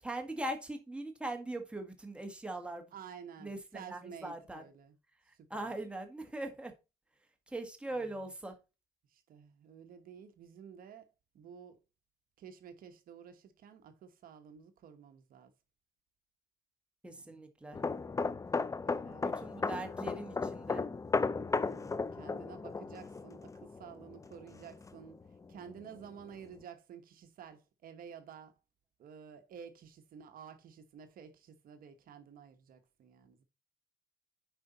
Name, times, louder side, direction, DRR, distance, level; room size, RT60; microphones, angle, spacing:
voice 1, 0.0-2.9 3.4-4.7 5.5-6.7 7.5-8.5 17.0-17.8 19.2-20.9, right 2 dB, 5° right, 1.8 m, -41 dB
voice 2, 2.9-5.0 5.3-5.7 7.9-8.1 9.1-11.8 12.4-15.5 17.1-17.4 18.8-19.3 21.5-28.6 29.0-33.4, right 7 dB, 60° right, 1.2 m, -52 dB
sound 1, 17.7-25.2 25.5-25.8, left 4 dB, 20° left, 0.6 m, -35 dB
9.6 x 4.9 x 4.1 m
cardioid pair, 110°, 17 cm